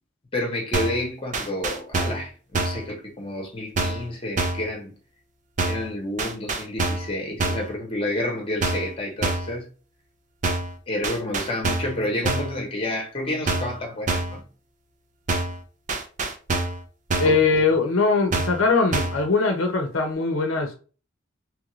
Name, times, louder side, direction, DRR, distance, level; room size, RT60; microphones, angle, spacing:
voice 1, 0.3-4.9 5.6-9.7 10.9-14.4 17.2-17.6, left 1 dB, 30° left, 0.9 m, -30 dB
sound 1, 0.7-1.0 1.3-2.3 2.5-2.9 3.8-4.1 4.4-4.7 5.6-5.9 6.2-7.1 7.4-7.7 8.6-8.9 9.2-9.5 10.4-10.7 11.0-12.0 12.2-12.6 13.5-13.8 14.1-14.4 15.3-15.6 15.9-16.8 17.1-17.4 18.3-18.6 18.9-19.2, right 3 dB, 40° right, 0.5 m, -26 dB
voice 2, 17.2-20.8, left 4 dB, 80° left, 0.6 m, -21 dB
3.2 x 2.4 x 3.0 m
head